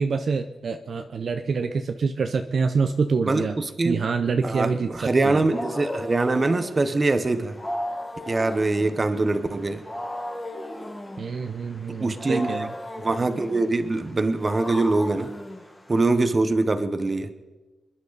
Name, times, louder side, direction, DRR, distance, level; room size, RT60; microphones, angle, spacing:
voice 1, 0.0-3.6 3.8-4.9 5.2-5.4 11.2-12.7, right 5 dB, 50° right, 6 dB, 0.7 m, -26 dB
voice 2, 3.2-4.0 4.4-7.6 8.3-9.8 12.0-12.7 13.0-15.3 15.9-17.3, right 2 dB, 25° right, 10 dB, 0.9 m, -23 dB
Wild animals, 5.1-16.3, left 1 dB, 15° left, 1.7 m, -36 dB
27.0 x 11.0 x 4.0 m, 1.2 s
wide cardioid pair, 160°, 0 cm